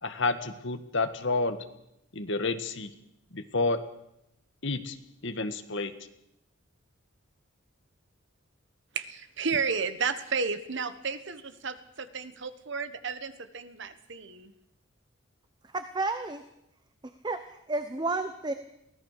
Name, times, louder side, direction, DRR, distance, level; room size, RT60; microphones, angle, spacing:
voice 1, 0.0-1.6 2.1-2.9 3.3-3.8 4.6-4.9 5.2-5.9, left 3 dB, 60° left, 9 dB, 1.7 m, -29 dB
voice 2, 8.9-14.5, right 5 dB, 60° right, 11 dB, 1.4 m, -32 dB
voice 3, 15.7-16.4 17.2-18.5, right 3 dB, 20° right, 9 dB, 0.9 m, -31 dB
23.5 x 17.0 x 6.7 m, 0.82 s
head